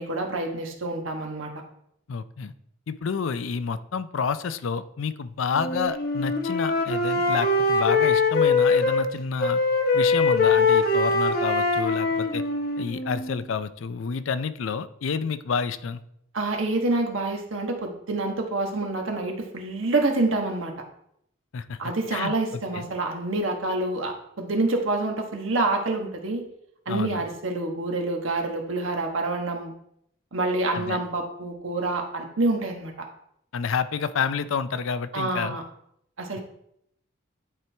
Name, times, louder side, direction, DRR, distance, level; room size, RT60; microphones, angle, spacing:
voice 1, 0.0-1.5 16.3-20.8 21.8-26.4 26.8-29.7 30.3-33.0 35.1-35.6 36.2-36.4, right 2 dB, 75° right, 3 dB, 1.3 m, -27 dB
voice 2, 2.1-2.5 2.9-9.6 9.9-12.4 12.8-16.0 21.5-21.8 22.1-22.9 26.9-27.2 30.7-31.0 33.5-35.6, left 5 dB, 70° left, 13 dB, 0.4 m, -29 dB
Wind instrument woodwind instrument, 5.5-9.1 9.4-13.4, left 3 dB, 45° left, 1.0 m, -22 dB
10.5 x 4.5 x 3.4 m, 0.73 s
head